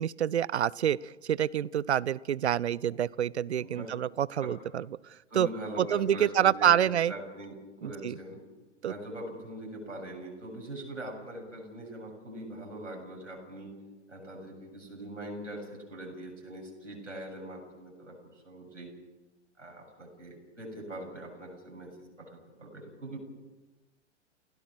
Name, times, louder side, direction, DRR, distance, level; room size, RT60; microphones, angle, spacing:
voice 1, 0.0-4.8 5.4-5.5 5.8-7.1 7.8-8.2 8.8-8.9, right 10 dB, 65° right, 24 dB, 0.6 m, -27 dB
voice 2, 3.6-3.9 4.4-4.5 5.3-8.4 8.9-13.8 14.1-18.9 19.6-23.2, right 1 dB, 85° right, 0 dB, 7.3 m, -42 dB
29.0 x 16.5 x 6.3 m, 1.2 s
figure-of-eight pair, 105°, 36 cm